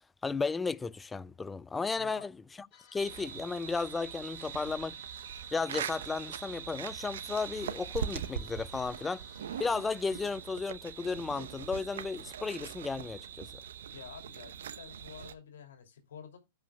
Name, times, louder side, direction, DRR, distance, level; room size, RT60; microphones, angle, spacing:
voice 1, 0.2-2.7 2.9-5.0 5.5-9.2 9.6-13.5, left 4 dB, 10° left, 0.4 m, -34 dB
voice 2, 2.0-2.3 13.9-16.4, left 8 dB, 75° left, 2.7 m, -50 dB
sound 1, 2.7-10.3, left 10 dB, 55° left, 1.6 m, -59 dB
sound 2, 3.0-15.3, right 8 dB, 70° right, 0.8 m, -42 dB
17.0 x 5.6 x 2.3 m
hypercardioid pair, 115°, 0 cm